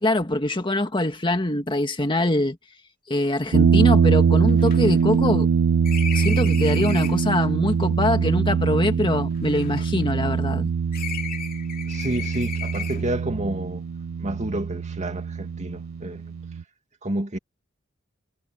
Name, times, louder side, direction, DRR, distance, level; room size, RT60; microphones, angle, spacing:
voice 1, 0.0-2.6 3.1-5.5 6.1-10.7, left 1 dB, 25° left, 1.9 m, -24 dB
sound 1, 3.2-3.3 3.5-3.6 4.0-7.3 8.2-10.6 10.9-13.2, left 7 dB, 45° left, 2.6 m, -37 dB
sound 2, 3.5-16.6, right 6 dB, 75° right, 0.4 m, -22 dB
voice 2, 11.9-13.8 14.2-16.2 17.0-17.4, right 1 dB, 35° right, 2.4 m, -30 dB
head